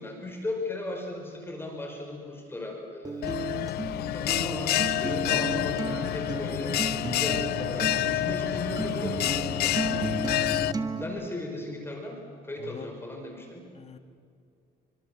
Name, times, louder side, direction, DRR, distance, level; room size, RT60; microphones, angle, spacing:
voice 1, 0.0-3.4 4.1-9.8 11.0-12.2 12.4-13.6, left 2 dB, 15° left, 1 dB, 5.2 m, -37 dB
Acoustic guitar, 3.0-11.0, right 3 dB, 20° right, 1.9 m, -34 dB
Bell, 3.2-10.7, left 15 dB, 70° left, 0.6 m, -28 dB
voice 2, 9.9-10.2 12.6-12.9 13.7-14.0, left 6 dB, 35° left, 8 dB, 1.8 m, -42 dB
26.5 x 25.5 x 7.8 m, 2.4 s
cardioid pair, 110°, 17 cm